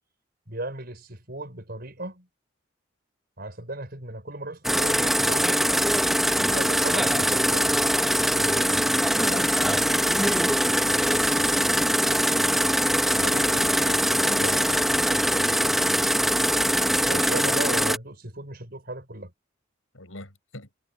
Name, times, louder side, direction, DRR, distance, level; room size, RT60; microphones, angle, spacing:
voice 1, 0.5-2.3 3.4-5.7 6.5-8.9 9.7-9.8 13.2-13.7 17.1-19.3, right 2 dB, 50° right, 6.1 m, -36 dB
sound 1, 4.6-18.0, equal, ahead, 1.1 m, -22 dB
voice 2, 9.2-9.9 13.1-15.9 19.9-20.7, left 1 dB, 80° left, 7.9 m, -40 dB
head